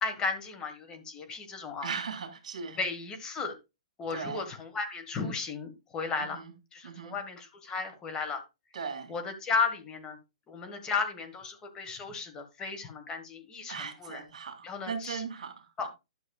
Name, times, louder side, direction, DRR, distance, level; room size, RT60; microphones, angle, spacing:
voice 1, 0.0-1.9 2.8-3.5 4.0-6.4 6.7-8.4 9.1-10.2 10.5-14.2 14.6-15.2 15.8-15.9, left 4 dB, 20° left, 1.4 m, -34 dB
voice 2, 1.8-2.8 4.1-4.5 6.2-6.5 6.8-7.2 8.7-9.1 13.7-15.9, right 6 dB, 65° right, 2.2 m, -38 dB
11.5 x 6.3 x 2.3 m
hypercardioid pair, 135°, 4 cm